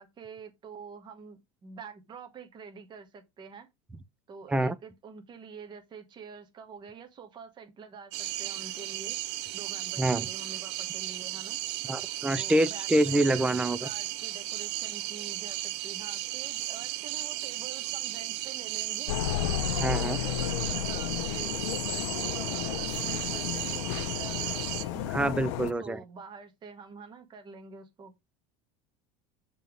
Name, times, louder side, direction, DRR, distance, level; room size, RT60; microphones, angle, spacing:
voice 1, 0.0-3.7 4.3-9.2 9.5-11.6 12.4-19.2 19.9-25.3 25.8-28.1, right 5 dB, 30° right, 1.8 m, -47 dB
sound 1, 8.1-24.8, right 15 dB, 70° right, 0.7 m, -35 dB
voice 2, 11.9-13.8 19.8-20.2 25.1-26.0, right 1 dB, 5° right, 0.5 m, -26 dB
sound 2, 19.1-25.7, left 14 dB, 70° left, 0.7 m, -32 dB
7.3 x 3.6 x 5.3 m
supercardioid pair, 140°, 16 cm